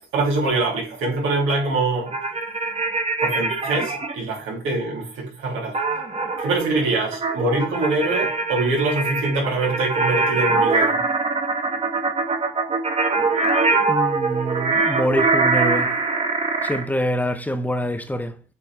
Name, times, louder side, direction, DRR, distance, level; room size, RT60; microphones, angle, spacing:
voice 1, 0.1-2.1 3.2-5.8 6.4-11.0, right 2 dB, 90° right, 3.0 m, -24 dB
sound 1, 2.1-4.1 5.7-16.8, right 3 dB, 30° right, 1.5 m, -23 dB
voice 2, 13.9-16.0 16.6-18.4, equal, 10° left, 0.9 m, -25 dB
7.8 x 4.3 x 3.6 m
cardioid pair, 90°, 20 cm